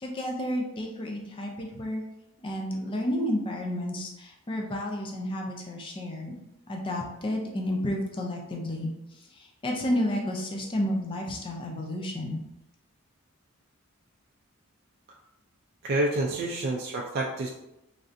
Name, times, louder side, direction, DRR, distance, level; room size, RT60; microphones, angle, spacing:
voice 1, 0.0-2.0 2.4-6.3 6.7-12.4, left 1 dB, 25° left, 0 dB, 0.4 m, -31 dB
voice 2, 15.8-17.5, right 2 dB, 45° right, -1 dB, 0.3 m, -28 dB
3.2 x 2.6 x 2.5 m, 0.89 s
head